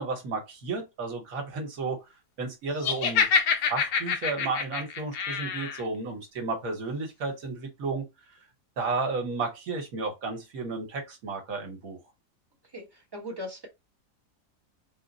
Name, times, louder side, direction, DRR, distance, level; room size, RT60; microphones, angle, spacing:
voice 1, 0.0-2.0 2.4-3.3 3.7-8.1 8.8-12.0, right 3 dB, 60° right, 1.3 m, -32 dB
Laughter, 2.8-5.8, left 5 dB, 80° left, 1.3 m, -26 dB
voice 2, 12.7-13.7, left 1 dB, 20° right, 0.8 m, -39 dB
3.9 x 2.0 x 3.9 m
omnidirectional pair, 1.8 m